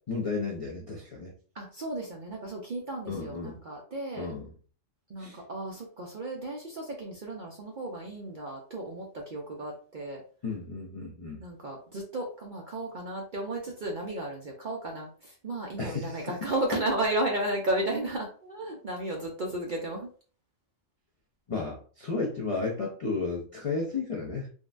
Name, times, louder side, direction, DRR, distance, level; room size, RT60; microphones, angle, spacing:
voice 1, 0.1-1.3 3.1-3.6 4.2-4.4 5.2-5.4 10.4-11.4 15.8-16.3 21.5-24.5, left 4 dB, 50° left, -2 dB, 0.4 m, -33 dB
voice 2, 1.5-4.3 5.1-10.2 11.4-20.1, right 1 dB, 55° right, -1 dB, 0.6 m, -34 dB
3.6 x 2.2 x 2.4 m, 0.41 s
omnidirectional pair, 1.4 m